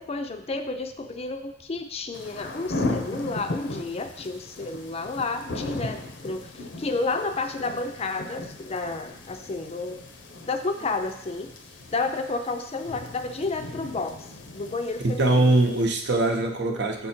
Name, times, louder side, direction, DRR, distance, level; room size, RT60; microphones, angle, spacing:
voice 1, 0.0-10.0 10.4-11.5 11.9-14.2 14.5-15.5, left 3 dB, 35° left, 7 dB, 0.4 m, -31 dB
sound 1, 2.1-15.9, left 2 dB, 75° left, 0.7 m, -37 dB
voice 2, 15.0-17.1, right 2 dB, 65° right, 4 dB, 0.8 m, -22 dB
6.9 x 3.8 x 4.3 m, 0.74 s
head